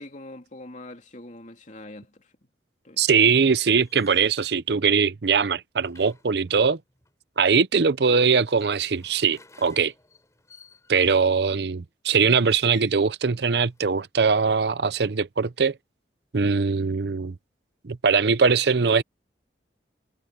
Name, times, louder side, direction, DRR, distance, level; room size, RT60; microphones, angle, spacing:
voice 1, 0.0-2.3 2.8-3.0 11.5-11.7, left 1 dB, 45° left, 2.9 m, -43 dB
voice 2, 3.0-6.8 7.4-9.9 10.9-15.7 16.3-17.3 17.8-19.0, right 5 dB, 60° right, 0.6 m, -21 dB
sound 1, 3.7-4.4 5.8-7.1 8.1-11.2 12.4-13.1 13.5-14.0, left 4 dB, 15° left, 4.3 m, -54 dB
head